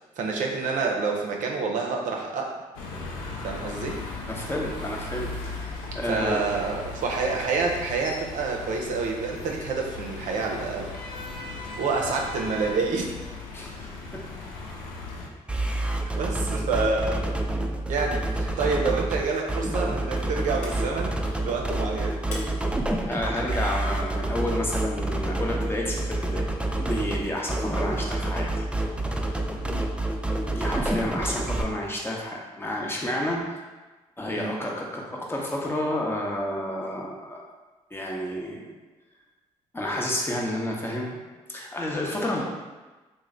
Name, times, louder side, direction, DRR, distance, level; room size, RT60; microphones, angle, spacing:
voice 1, 0.2-2.6 3.4-4.0 6.0-10.9 11.8-13.2 16.2-17.2 17.9-22.2 29.6-29.9 31.2-31.3 34.3-34.6, right 4 dB, 70° right, 0 dB, 0.6 m, -28 dB
sound 1, 2.7-15.3, left 3 dB, 85° left, 0.4 m, -37 dB
voice 2, 4.3-6.4 13.5-13.9 23.0-26.4 26.8-28.6 30.5-33.6 34.2-37.4 37.9-38.7 39.7-41.2 41.5-42.4, left 1 dB, 15° left, -2 dB, 0.8 m, -30 dB
sound 2, 15.5-31.6, right 1 dB, 10° right, 0.4 m, -28 dB
sound 3, 20.2-21.5 21.8-21.9 22.1-22.4 22.9-23.2 23.6-23.8 25.8-25.9, left 2 dB, 65° left, 0.8 m, -42 dB
3.1 x 2.1 x 3.7 m, 1.2 s
supercardioid pair, 55°, 14 cm